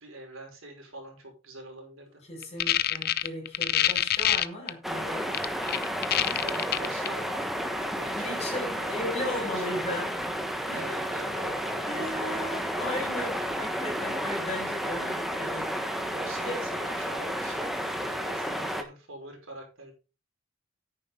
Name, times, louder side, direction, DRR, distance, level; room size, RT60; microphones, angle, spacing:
voice 1, 0.0-2.2 6.1-7.4 7.9-9.8 10.7-12.1 16.1-19.9, right 2 dB, 90° right, 5.4 m, -44 dB
voice 2, 2.3-5.3 8.1-10.1 10.7-10.9 11.8-16.5, left 1 dB, 30° left, 6.4 m, -36 dB
sound 1, 2.4-4.7 5.3-7.1, left 12 dB, 50° left, 0.6 m, -25 dB
sound 2, 4.8-18.8, equal, ahead, 1.3 m, -32 dB
10.5 x 9.6 x 3.9 m
head